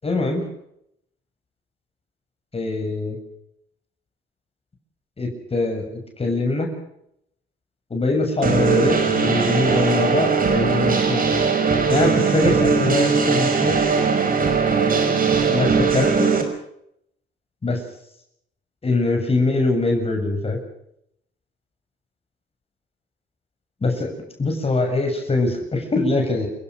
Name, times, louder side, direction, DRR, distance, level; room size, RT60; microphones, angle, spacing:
voice 1, 0.0-0.4 2.5-3.2 5.2-6.7 7.9-11.3 11.9-13.8 15.5-16.3 17.6-17.8 18.8-20.6 23.8-24.1 24.4-26.5, left 2 dB, 30° left, 3 dB, 7.2 m, -22 dB
sound 1, 8.4-16.4, right 5 dB, 45° right, 5.4 m, -19 dB
29.5 x 16.5 x 6.2 m, 0.75 s
cardioid pair, 90°, 20 cm